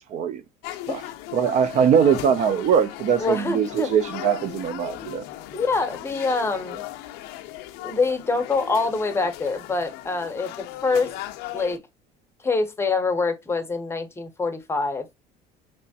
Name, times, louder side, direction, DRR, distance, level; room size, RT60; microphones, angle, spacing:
sound 1, 0.6-11.8, left 14 dB, 75° left, 0.4 m, -37 dB
voice 1, 1.3-5.2, right 7 dB, 45° right, 0.4 m, -21 dB
voice 2, 3.2-3.9 5.5-6.8 7.8-11.1 11.5-11.8 12.4-15.2, left 3 dB, 15° left, 0.6 m, -25 dB
3.3 x 3.0 x 2.7 m
cardioid pair, 125°, 17 cm